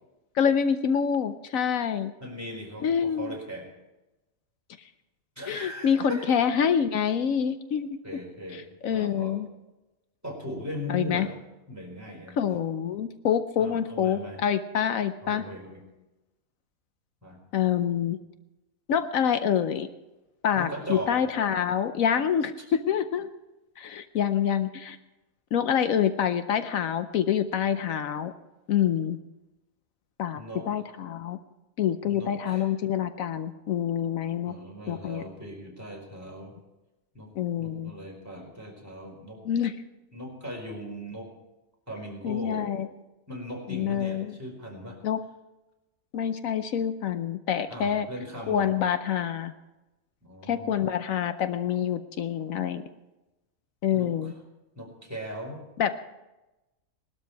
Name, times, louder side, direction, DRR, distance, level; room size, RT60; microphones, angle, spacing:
voice 1, 0.4-2.1 2.8-3.3 5.5-7.9 8.5-9.5 10.9-11.3 12.4-15.4 17.5-18.2 18.9-19.9 20.4-23.3 23.8-25.0 25.5-28.3 28.7-29.2 30.2-30.4 30.7-31.4 31.8-34.5 34.9-35.2 37.4-37.9 39.4-39.7 42.2-42.9 43.7-44.4 45.0-45.2 46.1-48.1 48.5-49.5 50.5-52.8 53.8-54.3 55.8-55.9, left 8 dB, 80° left, 10 dB, 1.2 m, -26 dB
voice 2, 2.2-3.7 5.4-6.3 8.0-8.6 8.9-9.4 10.2-11.4 11.7-12.4 13.6-14.4 15.2-15.8 17.2-17.4 20.6-21.1 30.3-30.7 32.0-32.7 34.4-36.5 37.1-37.3 37.6-39.4 40.1-41.3 41.9-42.7 43.3-45.0 47.7-48.7 50.2-50.9 53.9-54.3 54.8-55.6, equal, 10° right, -1 dB, 4.4 m, -39 dB
19.5 x 12.5 x 4.6 m, 1.0 s
omnidirectional pair, 1.4 m